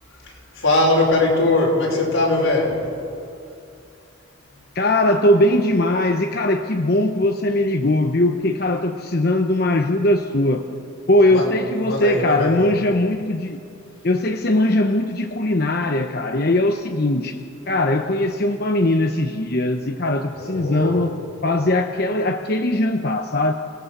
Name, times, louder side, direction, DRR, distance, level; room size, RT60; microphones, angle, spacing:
voice 1, 0.6-2.9 11.3-11.4 11.8-12.6 20.4-21.0, left 2 dB, 90° left, -2 dB, 5.5 m, -20 dB
voice 2, 4.7-10.6 11.1-13.6 14.0-17.4 17.7-21.1 21.4-23.5, left 1 dB, 50° left, 5 dB, 0.8 m, -20 dB
28.5 x 18.0 x 6.8 m, 2.4 s
head